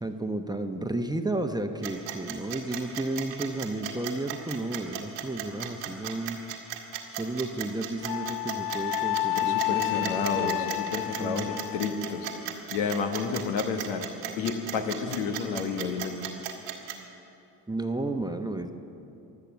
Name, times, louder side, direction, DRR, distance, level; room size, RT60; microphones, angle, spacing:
voice 1, 0.0-6.4 7.1-10.7 11.2-11.6 17.7-18.7, right 2 dB, 10° right, 5 dB, 1.0 m, -32 dB
sound 1, 1.8-16.9, right 12 dB, 70° right, 1.7 m, -36 dB
Wind instrument woodwind instrument, 8.1-12.4, left 18 dB, 50° left, 0.5 m, -30 dB
voice 2, 9.4-12.3 12.7-14.1 14.4-16.3, left 5 dB, 70° left, 5 dB, 1.4 m, -31 dB
23.0 x 8.2 x 7.2 m, 2.9 s
figure-of-eight pair, 50°, 48 cm